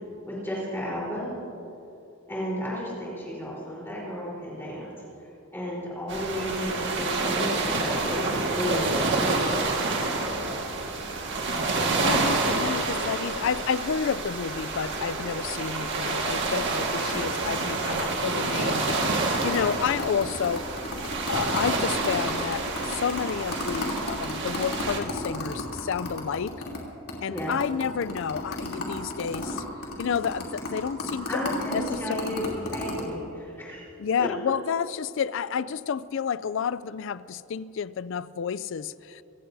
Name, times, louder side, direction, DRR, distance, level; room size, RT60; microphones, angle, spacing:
voice 1, 0.3-1.4 2.3-4.9 5.5-9.3 27.3-27.5 31.3-33.9 34.2-34.3, equal, 10° left, -6 dB, 3.9 m, -33 dB
sound 1, 6.1-25.0, right 3 dB, 55° right, 1.7 m, -28 dB
voice 2, 12.0-20.7 21.3-26.6 27.2-29.6 30.0-32.1 34.0-39.2, left 7 dB, 55° left, 18 dB, 0.3 m, -30 dB
sound 2, 18.8-26.8 27.1-27.2 27.4-33.0, left 2 dB, 85° left, 3.1 m, -33 dB
26.5 x 15.5 x 2.7 m, 2.9 s
head